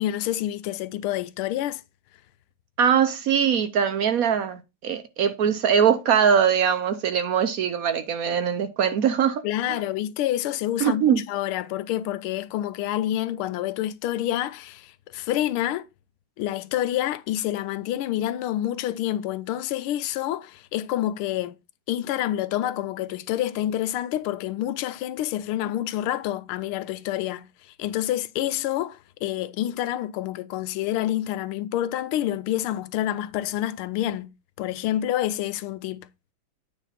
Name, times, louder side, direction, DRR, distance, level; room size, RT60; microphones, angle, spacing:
voice 1, 0.0-1.8 9.4-15.9 16.4-21.6 21.9-34.3 34.6-36.1, left 13 dB, 85° left, 1.5 m, -28 dB
voice 2, 2.8-9.4 9.7-9.8 10.8-11.2, right 8 dB, 70° right, 0.8 m, -22 dB
9.1 x 3.4 x 5.7 m
omnidirectional pair, 2.3 m